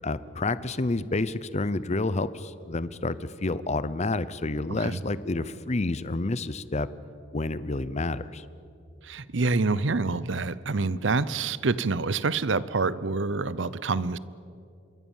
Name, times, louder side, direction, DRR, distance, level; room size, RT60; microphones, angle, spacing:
voice 1, 0.0-6.9 7.3-8.4, left 2 dB, 35° left, 16 dB, 0.7 m, -29 dB
voice 2, 9.0-14.2, right 3 dB, 65° right, 18 dB, 0.8 m, -27 dB
26.5 x 22.5 x 7.3 m, 2.5 s
head